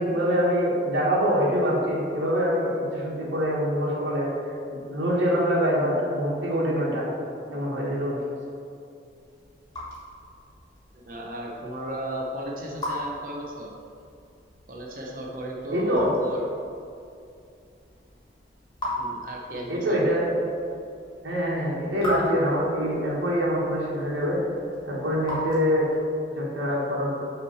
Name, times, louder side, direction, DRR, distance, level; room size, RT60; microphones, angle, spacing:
voice 1, 0.0-4.3 4.7-7.0 7.5-8.2 15.7-16.1 19.7-20.3 21.2-24.4 24.9-25.9 26.3-27.2, equal, 85° right, -6 dB, 1.3 m, -24 dB
Raindrop / Drip, 9.0-26.2, left 1 dB, 20° left, 1.4 m, -39 dB
voice 2, 11.1-13.7 14.7-16.4 19.0-20.0, right 1 dB, 45° right, -1 dB, 0.7 m, -35 dB
5.7 x 3.1 x 5.6 m, 2.5 s
head